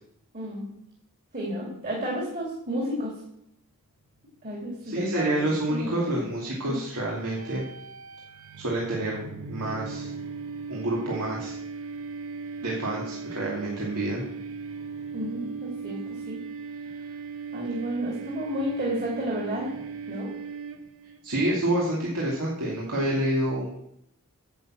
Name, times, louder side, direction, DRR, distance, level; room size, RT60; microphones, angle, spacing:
voice 1, 0.3-0.7 1.3-3.2 4.4-6.2 6.7-6.8 15.1-16.4 16.9-17.1 17.5-19.7 20.1-20.3, equal, 40° right, -3 dB, 3.0 m, -32 dB
voice 2, 4.8-7.6 8.6-9.2 9.5-10.1 10.7-11.5 12.6-14.2 21.2-23.7, right 1 dB, 80° right, -4 dB, 2.6 m, -28 dB
sound 1, 7.1-21.2, right 5 dB, 65° right, 1.1 m, -38 dB
10.5 x 7.0 x 7.7 m, 0.75 s
head